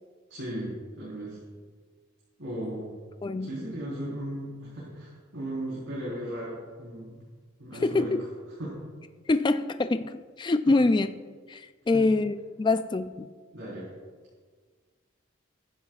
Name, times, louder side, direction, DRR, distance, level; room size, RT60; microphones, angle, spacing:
voice 1, 0.3-1.4 2.4-2.9 3.4-7.2 7.6-8.1 8.6-8.8 10.7-10.8 11.9-12.1 13.5-13.9, right 1 dB, 75° right, -7 dB, 4.0 m, -36 dB
voice 2, 3.2-3.6 7.8-8.1 9.3-11.1 11.5-13.3, left 3 dB, 25° left, 10 dB, 0.3 m, -25 dB
20.5 x 10.5 x 2.4 m, 1.5 s
head